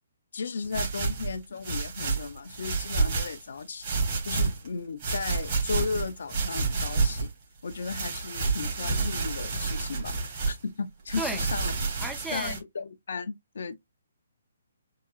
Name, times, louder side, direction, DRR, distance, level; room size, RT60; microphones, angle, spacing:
voice 1, 0.3-3.9 4.2-7.3 7.6-11.7 12.3-13.7, left 5 dB, 65° left, 0.6 m, -35 dB
sound 1, 0.6-3.4 3.8-4.7 5.0-7.3 7.7-10.6 11.1-12.6, right 4 dB, 35° right, 2.6 m, -29 dB
voice 2, 12.0-12.6, right 2 dB, 5° right, 0.4 m, -33 dB
4.8 x 2.3 x 2.4 m
figure-of-eight pair, 140°, 0 cm